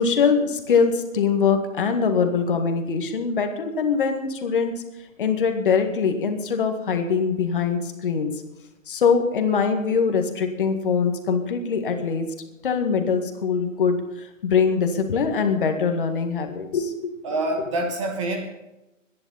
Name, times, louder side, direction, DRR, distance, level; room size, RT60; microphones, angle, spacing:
voice 1, 0.0-4.8 5.2-8.3 8.9-12.3 12.6-17.1, left 5 dB, 40° left, 5 dB, 2.0 m, -23 dB
voice 2, 17.2-18.5, right 2 dB, 25° right, 3 dB, 1.5 m, -26 dB
22.5 x 11.0 x 4.2 m, 0.95 s
figure-of-eight pair, 150°, 40 cm